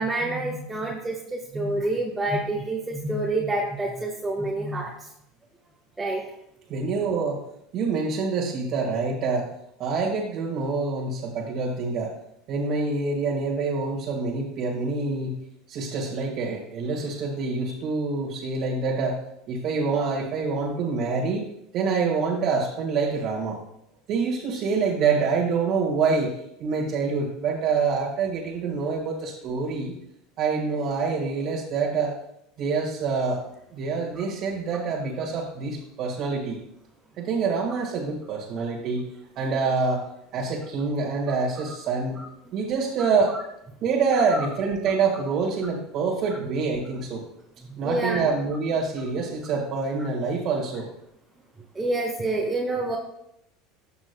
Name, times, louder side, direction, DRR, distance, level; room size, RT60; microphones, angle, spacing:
voice 1, 0.0-4.9 6.0-6.2 44.4-44.5 47.7-48.3 51.7-53.0, right 2 dB, 15° right, -2 dB, 1.5 m, -27 dB
voice 2, 6.7-7.4 7.7-9.5 9.8-12.1 12.5-15.4 15.7-19.2 19.5-21.4 21.7-23.6 24.1-30.0 30.4-32.2 32.6-33.4 33.7-36.6 37.2-39.1 39.4-40.1 40.3-42.2 42.5-43.4 43.8-47.2 47.8-50.9, right 4 dB, 55° right, -3 dB, 1.8 m, -26 dB
14.5 x 6.1 x 2.3 m, 0.79 s
hypercardioid pair, 95°, 0 cm